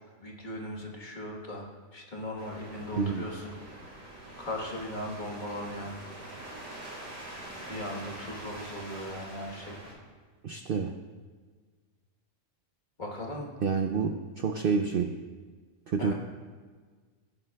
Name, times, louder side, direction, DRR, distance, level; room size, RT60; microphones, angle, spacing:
voice 1, 0.2-3.5 4.4-6.0 7.7-9.8 13.0-13.5 16.0-16.1, left 1 dB, 40° left, -1 dB, 1.5 m, -38 dB
sound 1, 2.4-9.9, right 1 dB, 85° right, 2.6 m, -44 dB
voice 2, 2.9-3.2 10.4-10.9 13.6-15.1 15.9-16.1, right 5 dB, 65° right, 6 dB, 0.6 m, -28 dB
15.0 x 9.5 x 2.3 m, 1.5 s
omnidirectional pair, 1.4 m